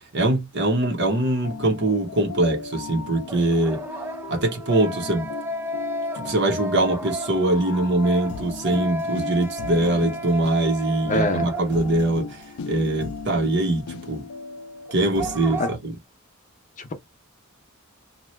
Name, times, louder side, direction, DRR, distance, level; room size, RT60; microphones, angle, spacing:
voice 1, 0.1-3.8 4.3-5.3 6.2-14.3 14.9-15.9, right 2 dB, 55° right, 0.9 m, -23 dB
sound 1, 0.7-0.8 3.3-12.2 12.4-12.5 14.9-15.7, right 1 dB, 10° right, 0.3 m, -33 dB
sound 2, 1.1-15.5, left 4 dB, 90° left, 0.5 m, -37 dB
voice 2, 11.1-11.5 15.6-15.7 16.8-16.9, left 2 dB, 35° left, 0.6 m, -24 dB
2.8 x 2.3 x 3.1 m
head